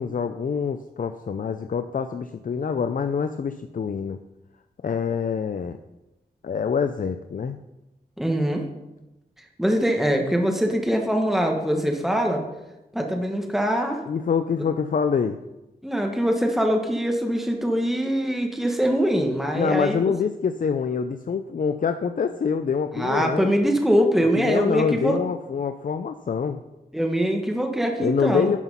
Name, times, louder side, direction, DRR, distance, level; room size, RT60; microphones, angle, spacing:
voice 1, 0.0-4.2 4.8-5.8 6.4-7.6 14.1-15.4 19.5-23.5 24.4-26.6 28.0-28.6, left 6 dB, 55° left, 9 dB, 0.5 m, -25 dB
voice 2, 8.2-8.7 9.6-12.4 12.9-14.0 15.8-20.0 22.9-25.2 26.9-28.5, equal, ahead, 2 dB, 1.4 m, -23 dB
11.0 x 5.7 x 5.5 m, 0.96 s
wide cardioid pair, 90°, 17 cm